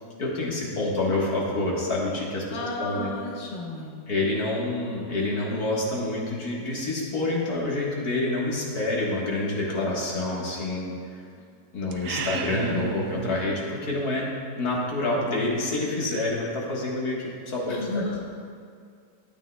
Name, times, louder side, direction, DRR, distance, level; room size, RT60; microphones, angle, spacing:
voice 1, 0.2-2.4 2.8-3.1 4.1-10.9 11.7-17.8, left 2 dB, 70° left, -4 dB, 2.0 m, -27 dB
voice 2, 2.5-4.0 11.4-11.5 12.3-12.4 12.7-12.9 17.6-18.3, left 2 dB, 45° left, -3 dB, 1.3 m, -33 dB
sound 1, 11.9-13.5, right 6 dB, 65° right, 0.9 m, -32 dB
12.5 x 8.7 x 2.2 m, 2.2 s
omnidirectional pair, 1.7 m